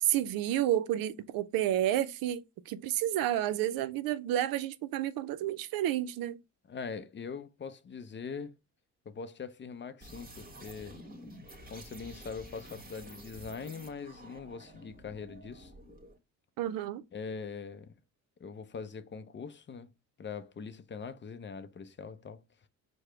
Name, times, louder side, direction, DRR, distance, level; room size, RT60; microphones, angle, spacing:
voice 1, 0.0-6.4 16.6-17.0, right 12 dB, 85° right, 0.5 m, -30 dB
voice 2, 6.7-8.6 9.1-11.0 11.7-15.7 17.1-17.9 18.4-19.9 20.2-22.4, left 5 dB, 35° left, 0.5 m, -42 dB
sound 1, 10.0-16.2, equal, 25° right, 1.4 m, -50 dB
4.8 x 2.1 x 4.3 m
cardioid pair, 75°, 34 cm